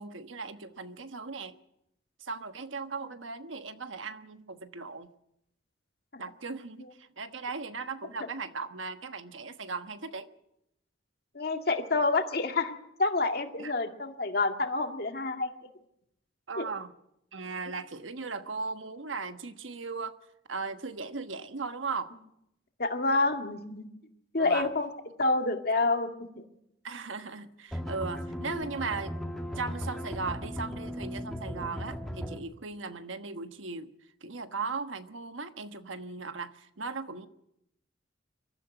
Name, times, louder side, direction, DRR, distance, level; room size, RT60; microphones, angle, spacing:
voice 1, 0.0-1.5 2.2-5.1 6.2-10.3 13.6-13.7 16.5-16.9 17.3-20.1 20.5-22.1 24.4-24.7 26.8-29.1 29.5-33.9 34.2-37.3, right 4 dB, 90° right, 9 dB, 1.3 m, -37 dB
voice 2, 11.3-15.5 16.6-16.7 22.8-23.9 24.3-24.9 25.2-26.1 26.4-26.5, left 3 dB, 55° left, 5 dB, 2.1 m, -28 dB
sound 1, 27.7-32.4, equal, ahead, 2.0 m, -37 dB
23.5 x 13.5 x 9.1 m, 0.82 s
head